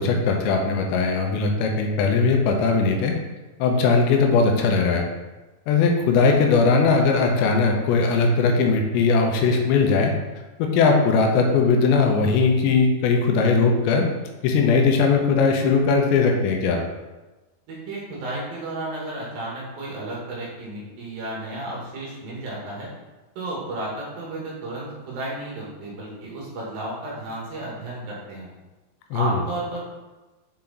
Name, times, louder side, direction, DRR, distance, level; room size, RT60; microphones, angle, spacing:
voice 1, 0.0-3.2 3.6-5.1 5.7-10.1 10.6-14.1 14.4-16.8 29.1-29.4, left 4 dB, 85° left, 2 dB, 3.0 m, -19 dB
voice 2, 17.7-22.9 23.4-28.5 29.1-29.9, right 2 dB, 65° right, -5 dB, 2.9 m, -33 dB
7.3 x 4.4 x 4.0 m, 1.1 s
omnidirectional pair, 5.0 m